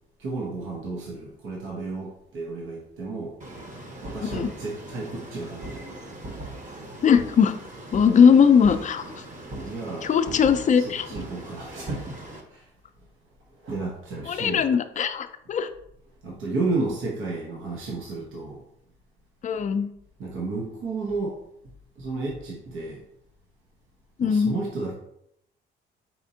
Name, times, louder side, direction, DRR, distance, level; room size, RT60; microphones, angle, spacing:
voice 1, 0.2-3.4 4.0-6.1 8.2-8.3 9.5-10.1 10.7-12.7 13.5-14.6 16.2-18.6 20.2-21.4 22.0-23.0 24.2-24.9, right 3 dB, 80° right, -2 dB, 1.0 m, -32 dB
sound 1, 3.4-12.4, right 1 dB, 40° right, 1.0 m, -40 dB
voice 2, 7.0-7.5 7.9-9.0 10.0-11.1 14.3-15.7 19.4-19.9 24.2-24.5, left 7 dB, 40° left, 9 dB, 0.4 m, -19 dB
4.3 x 4.1 x 2.7 m, 0.75 s
cardioid pair, 90°, 20 cm